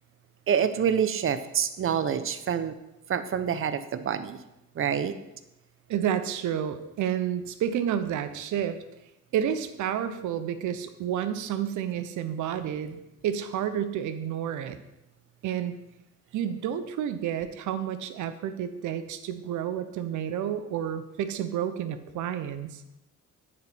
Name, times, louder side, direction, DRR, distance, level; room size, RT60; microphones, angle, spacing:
voice 1, 0.5-2.7 3.1-4.4 4.7-5.2, right 8 dB, 45° right, 11 dB, 0.6 m, -27 dB
voice 2, 5.9-8.8 9.3-14.8 15.4-15.8 16.3-22.8, right 9 dB, 75° right, 10 dB, 0.7 m, -30 dB
8.6 x 4.2 x 4.1 m, 0.91 s
cardioid pair, 90°, 30 cm